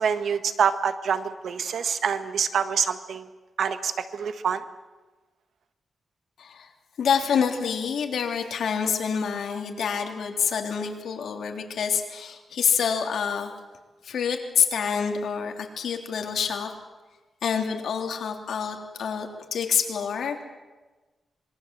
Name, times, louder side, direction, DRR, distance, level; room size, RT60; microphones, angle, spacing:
voice 1, 0.0-3.3 3.6-4.6, right 7 dB, 75° right, 10 dB, 1.6 m, -26 dB
voice 2, 6.4-6.7 7.0-13.5 14.0-16.7 17.4-20.4, left 7 dB, 85° left, 3 dB, 3.3 m, -27 dB
26.0 x 22.5 x 7.7 m, 1.2 s
wide cardioid pair, 105°, 0 cm